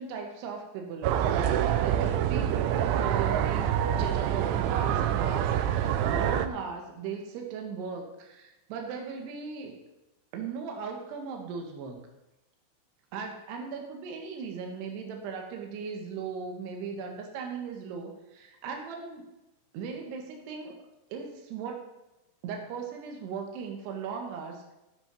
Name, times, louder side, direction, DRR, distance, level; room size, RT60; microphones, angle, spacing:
voice 1, 0.0-9.8 10.3-12.0 13.1-19.3 19.7-20.7 21.1-21.8 22.4-24.7, right 5 dB, 65° right, 2 dB, 3.4 m, -38 dB
sound 1, 1.0-6.5, right 10 dB, 80° right, 2.9 m, -26 dB
17.0 x 6.3 x 5.3 m, 0.97 s
omnidirectional pair, 5.8 m